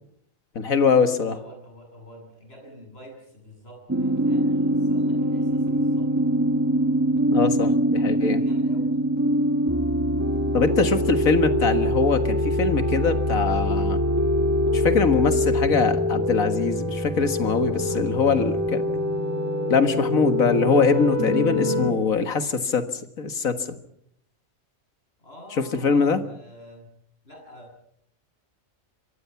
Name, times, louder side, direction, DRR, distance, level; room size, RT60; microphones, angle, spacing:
voice 1, 0.6-1.4 7.3-8.4 10.5-14.0 14.7-18.8 19.7-22.9 23.2-23.8 25.8-26.2, left 5 dB, 90° left, 9 dB, 2.1 m, -22 dB
voice 2, 1.2-6.1 8.1-9.0 17.8-18.4 25.2-26.9 27.2-27.8, equal, 45° left, 3 dB, 8.4 m, -47 dB
sound 1, 3.9-21.9, equal, 15° right, 1.4 m, -23 dB
26.0 x 24.0 x 5.9 m, 0.69 s
omnidirectional pair, 1.4 m